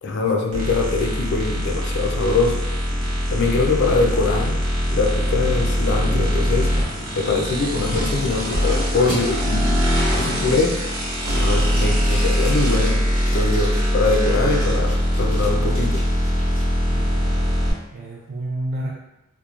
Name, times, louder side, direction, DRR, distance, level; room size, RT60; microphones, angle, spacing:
voice 1, 0.0-2.6 3.3-4.6 4.9-6.7 7.2-9.8 10.2-10.8 11.3-13.0 13.3-16.0, left 3 dB, 50° left, 2 dB, 0.4 m, -23 dB
sound 1, 0.5-17.7, equal, 85° right, 0.8 m, -22 dB
sound 2, 2.2-8.6 9.1-9.2 9.7-10.0 10.4-10.9 11.2-14.1 14.6-16.6, equal, 25° right, 0.8 m, -38 dB
voice 2, 16.9-17.6 17.9-18.9, right 1 dB, 45° right, -3 dB, 0.3 m, -31 dB
2.9 x 2.1 x 2.3 m, 0.89 s
head